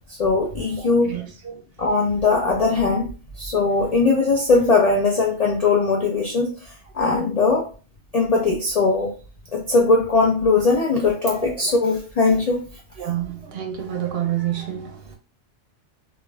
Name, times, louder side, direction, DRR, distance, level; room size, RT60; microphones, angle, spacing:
voice 1, 0.1-1.1 1.8-3.1 3.4-7.7 8.1-9.1 9.5-12.6, left 3 dB, 55° left, 0.4 m, -20 dB
voice 2, 0.8-1.6 7.0-7.1 11.3-11.6 13.0-15.2, right 11 dB, 65° right, 0.7 m, -29 dB
2.4 x 2.3 x 3.1 m
omnidirectional pair, 1.2 m